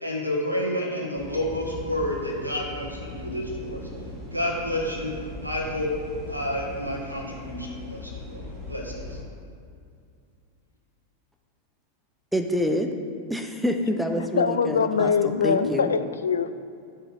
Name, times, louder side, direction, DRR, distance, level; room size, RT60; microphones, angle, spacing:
voice 1, 0.0-3.8 4.3-5.1 5.4-5.9 6.3-8.4 8.7-9.2, left 1 dB, 85° right, -2 dB, 1.4 m, -29 dB
sound 1, 1.2-9.2, left 2 dB, 30° right, 1.8 m, -39 dB
voice 2, 12.3-12.9 13.3-15.9, equal, ahead, 4 dB, 0.6 m, -27 dB
voice 3, 14.2-16.5, left 6 dB, 70° left, 10 dB, 0.3 m, -23 dB
11.5 x 5.6 x 2.6 m, 2.4 s
figure-of-eight pair, 90°, 0 cm